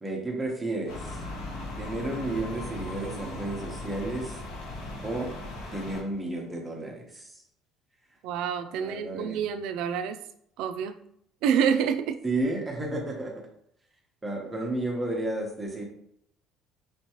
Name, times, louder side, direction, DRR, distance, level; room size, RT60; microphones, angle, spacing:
voice 1, 0.0-1.2 1.8-4.4 5.0-5.4 5.7-7.4 8.7-9.4 12.2-13.5 14.2-15.8, right 2 dB, 10° right, -1 dB, 1.0 m, -32 dB
sound 1, 0.9-6.0, left 1 dB, 80° left, 1.4 m, -38 dB
voice 2, 8.2-10.2 10.6-10.9 11.4-12.2, right 8 dB, 70° right, 9 dB, 0.3 m, -27 dB
5.5 x 3.0 x 3.0 m, 0.73 s
cardioid pair, 155°, 0 cm